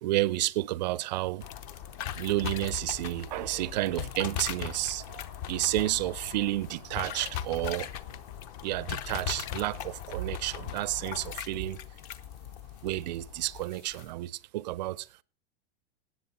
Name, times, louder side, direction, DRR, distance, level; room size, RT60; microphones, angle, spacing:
voice 1, 0.0-1.4 2.1-7.9 8.6-11.8 12.8-15.1, right 17 dB, 40° right, 0.5 m, -31 dB
sound 1, 1.4-14.1, left 10 dB, 35° left, 0.8 m, -39 dB
18.0 x 7.9 x 4.2 m
supercardioid pair, 170°, 33 cm